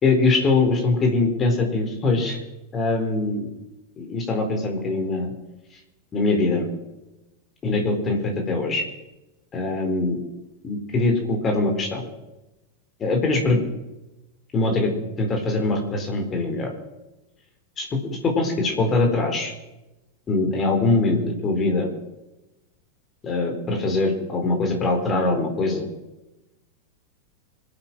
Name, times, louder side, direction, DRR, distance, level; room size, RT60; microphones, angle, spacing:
voice 1, 0.0-2.4 2.7-3.5 4.0-5.3 6.1-6.7 7.6-8.8 9.5-10.2 10.6-12.0 13.0-13.6 14.5-14.9 15.2-16.7 17.8-19.5 20.3-21.9 23.2-25.9, left 3 dB, 25° left, 3 dB, 4.2 m, -22 dB
26.0 x 9.0 x 6.1 m, 0.99 s
figure-of-eight pair, 90°, 0 cm